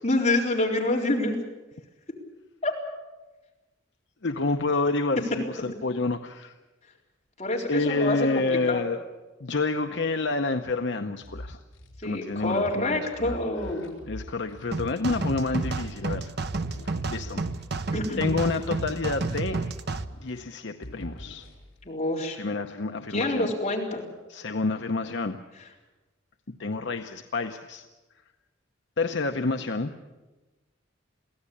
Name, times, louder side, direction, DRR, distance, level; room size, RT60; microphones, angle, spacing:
voice 1, 0.0-1.4 2.6-2.7 7.4-8.8 12.0-13.9 17.9-18.3 21.8-22.4 23.1-24.0, left 2 dB, 35° left, -2 dB, 4.1 m, -27 dB
voice 2, 4.2-6.5 7.7-9.0 9.4-11.6 12.0-13.4 14.1-16.3 17.1-17.4 18.2-19.6 20.2-21.5 22.4-23.5 24.3-25.4 26.6-27.8 29.0-29.9, left 3 dB, 60° left, 6 dB, 0.8 m, -28 dB
sound 1, 11.2-17.8 18.0-20.5 20.8-21.9, equal, 85° left, 4.7 m, -44 dB
sound 2, 14.7-20.0, right 3 dB, 55° right, 0.9 m, -31 dB
23.5 x 16.0 x 8.6 m, 1.2 s
head